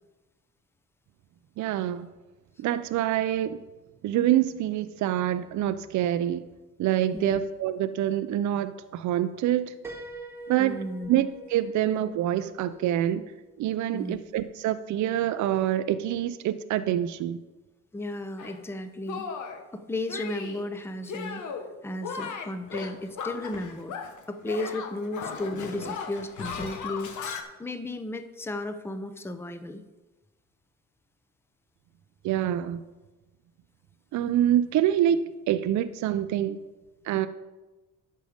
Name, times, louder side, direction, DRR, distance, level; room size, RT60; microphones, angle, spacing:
voice 1, 1.6-2.1 2.6-3.6 4.0-6.4 6.8-9.7 10.5-10.8 11.1-13.3 13.6-17.4 32.2-32.8 34.1-36.6 37.0-37.3, right 11 dB, 70° right, 11 dB, 0.5 m, -26 dB
Piano, 9.8-13.6, right 2 dB, 10° right, 1.4 m, -45 dB
voice 2, 10.6-11.1 13.9-14.2 17.9-19.3 19.7-21.4 21.8-24.0 24.3-27.1 27.6-29.8, left 1 dB, 10° left, 10 dB, 0.7 m, -34 dB
Shatter, 18.4-18.6 19.1-19.6 20.1-20.6 21.0-21.7 22.0-24.2 24.4-27.4, left 6 dB, 75° left, 1.2 m, -36 dB
10.5 x 6.6 x 5.1 m, 1.1 s
cardioid pair, 90°, 30 cm